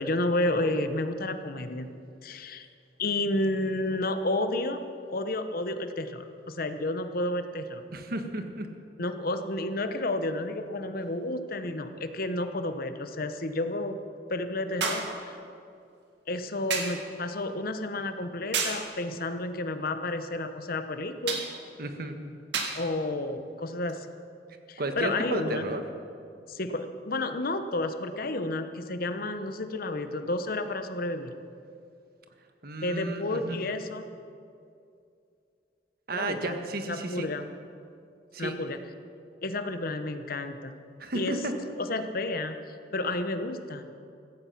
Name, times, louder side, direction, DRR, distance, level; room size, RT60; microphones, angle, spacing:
voice 1, 0.0-1.9 2.2-2.7 3.0-4.8 5.1-7.8 9.0-14.0 14.3-15.4 16.3-21.4 22.7-24.1 24.7-25.7 26.5-31.3 32.8-34.1 36.1-36.5 36.9-37.5 38.4-38.8 39.4-40.8 41.1-41.4 41.8-43.9, left 2 dB, 55° left, 9 dB, 1.0 m, -31 dB
voice 2, 7.9-8.7 21.8-22.2 24.8-25.8 32.6-33.6 36.1-37.3 38.3-38.6 41.0-41.6, right 2 dB, 60° right, 6 dB, 1.5 m, -33 dB
sound 1, 11.0-11.1 14.8-15.2 16.7-17.0 18.5-18.9 21.3-21.5 22.5-22.8 23.9-24.0, right 5 dB, 80° right, 2.2 m, -30 dB
15.5 x 15.0 x 5.9 m, 2.5 s
head